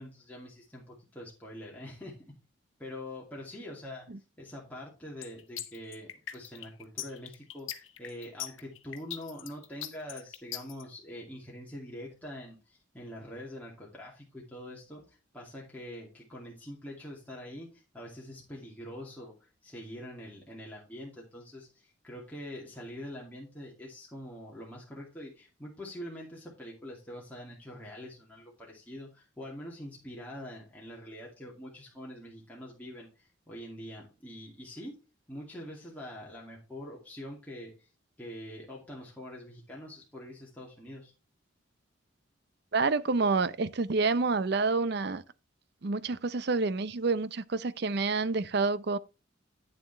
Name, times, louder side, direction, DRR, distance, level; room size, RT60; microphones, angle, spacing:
voice 1, 0.0-2.3 2.8-4.1 4.4-35.0 35.3-37.9 38.2-41.1, left 1 dB, 10° left, 2.4 m, -44 dB
sound 1, 5.2-10.8, left 12 dB, 80° left, 1.1 m, -40 dB
voice 2, 42.7-45.2 45.8-49.0, right 3 dB, 55° right, 0.6 m, -28 dB
9.0 x 7.3 x 3.3 m
head